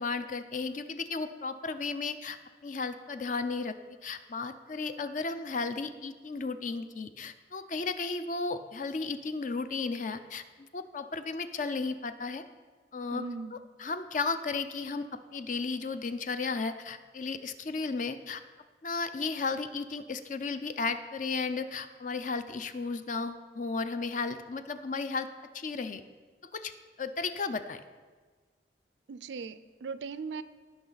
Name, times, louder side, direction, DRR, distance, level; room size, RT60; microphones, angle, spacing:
voice 1, 0.0-12.4 12.9-13.2 13.5-15.0 15.3-18.4 18.8-25.3 25.5-26.0 26.5-26.7 27.0-27.8, left 4 dB, 45° left, 10 dB, 0.5 m, -34 dB
voice 2, 13.1-13.5 29.1-30.4, right 5 dB, 90° right, 14 dB, 0.5 m, -38 dB
17.0 x 5.8 x 4.0 m, 1.4 s
head